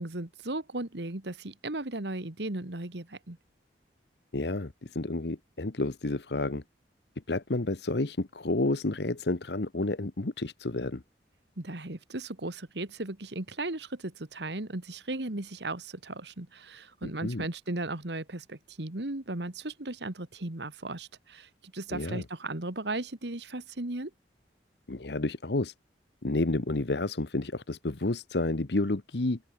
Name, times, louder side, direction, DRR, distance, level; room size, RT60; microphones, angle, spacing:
voice 1, 0.0-3.4 11.6-24.1, right 2 dB, 70° right, 2.0 m, -36 dB
voice 2, 4.3-6.6 7.3-11.0 17.0-17.4 21.9-22.2 24.9-25.7 26.2-29.4, left 2 dB, 65° left, 1.1 m, -30 dB
open air
head